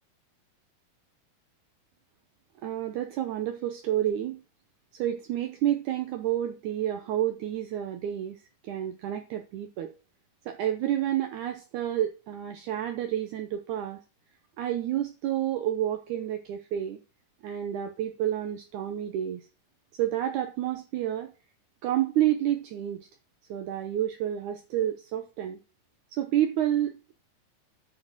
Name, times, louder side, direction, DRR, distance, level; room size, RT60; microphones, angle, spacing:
voice 1, 2.6-4.4 4.9-9.9 10.5-14.0 14.6-17.0 17.4-19.4 20.0-21.3 21.8-23.0 23.5-25.6 26.1-27.2, right 11 dB, 75° right, 6 dB, 2.2 m, -29 dB
9.7 x 4.5 x 7.8 m, 0.32 s
omnidirectional pair, 3.9 m